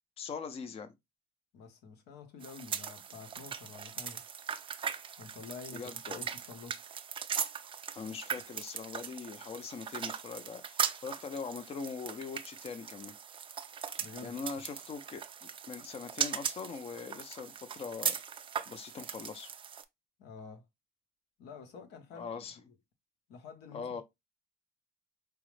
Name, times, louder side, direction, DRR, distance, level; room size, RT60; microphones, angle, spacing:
voice 1, 0.2-0.9 5.7-6.2 7.9-13.1 14.2-15.2 15.7-18.2 18.7-19.5 22.1-22.6 23.7-24.0, left 5 dB, 35° left, 0.5 m, -41 dB
voice 2, 1.5-4.2 5.2-6.8 14.0-14.4 20.2-20.7 21.4-22.3 23.3-24.0, left 5 dB, 85° left, 0.9 m, -49 dB
sound 1, 2.4-19.8, right 7 dB, 30° right, 0.4 m, -39 dB
4.6 x 2.0 x 3.1 m
cardioid pair, 110°, 17 cm